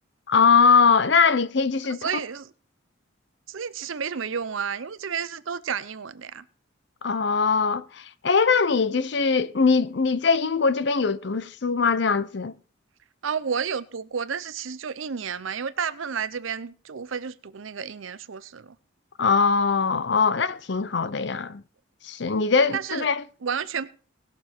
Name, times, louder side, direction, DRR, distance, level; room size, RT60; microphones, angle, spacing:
voice 1, 0.3-2.1 7.0-12.5 19.2-21.6 22.0-23.2, left 5 dB, 55° left, 0.6 m, -21 dB
voice 2, 2.0-2.5 3.5-6.4 13.2-18.8 22.7-23.1 23.4-23.9, right 6 dB, 75° right, 0.6 m, -31 dB
19.5 x 6.9 x 4.4 m
head